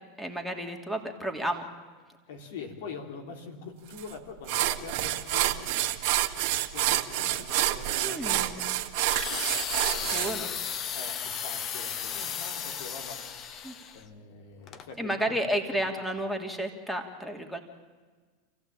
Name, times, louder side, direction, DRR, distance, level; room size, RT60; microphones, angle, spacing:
voice 1, 0.2-1.7 7.9-8.6 10.1-10.5 13.6-13.7 15.0-17.6, right 1 dB, ahead, 4 dB, 2.8 m, -32 dB
voice 2, 2.3-6.0 6.7-8.5 9.9-10.6 10.9-13.6 13.9-15.7, left 5 dB, 75° left, 4 dB, 3.7 m, -44 dB
sound 1, 4.0-4.1 4.5-10.3, right 14 dB, 60° right, 1.8 m, -28 dB
sound 2, 9.1-14.0 14.7-14.8, left 8 dB, 40° left, 1.4 m, -35 dB
27.5 x 15.5 x 8.9 m, 1.4 s
hypercardioid pair, 105°, 0 cm